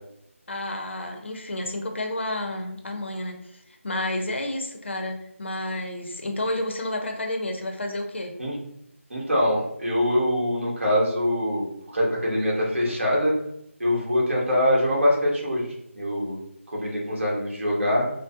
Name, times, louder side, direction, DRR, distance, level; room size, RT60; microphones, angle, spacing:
voice 1, 0.5-3.4 3.8-8.3, left 1 dB, 55° left, 3 dB, 0.6 m, -30 dB
voice 2, 9.1-11.7 11.9-13.3 13.8-16.4 16.7-18.1, left 1 dB, 60° right, -3 dB, 1.2 m, -23 dB
3.7 x 2.0 x 2.6 m, 0.79 s
figure-of-eight pair, 160°, 7 cm